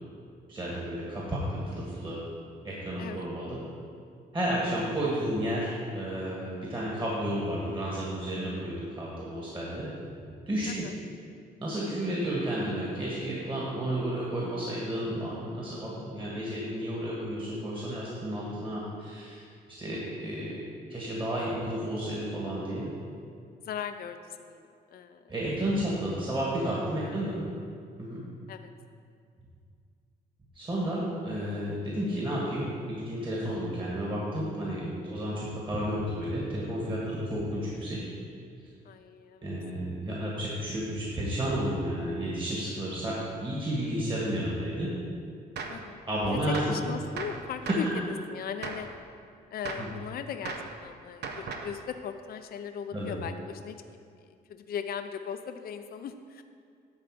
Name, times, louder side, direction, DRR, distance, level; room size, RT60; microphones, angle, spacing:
voice 1, 0.5-2.2 2.6-3.6 4.3-9.9 10.5-10.9 11.6-20.6 20.9-22.9 25.3-27.4 28.0-28.2 30.6-38.0 39.4-44.9 46.1-46.6 47.7-47.8 49.8-49.9 52.9-53.2, right 1 dB, 25° right, -5 dB, 2.2 m, -32 dB
voice 2, 23.6-25.3 26.0-26.3 27.1-27.4 28.5-28.7 38.8-39.5 45.7-46.4 46.7-47.9 48.3-48.9 49.5-50.5 50.8-54.0 54.5-56.4, left 7 dB, 55° left, 8 dB, 0.5 m, -39 dB
Gunshot gunfire, 45.6-45.9 46.5-46.8 47.2-48.0 48.6-48.9 49.6-50.0 50.5-50.8 51.2-51.8, right 4 dB, 70° right, 0.9 m, -37 dB
10.5 x 4.1 x 7.6 m, 2.3 s
cardioid pair, 90°, 18 cm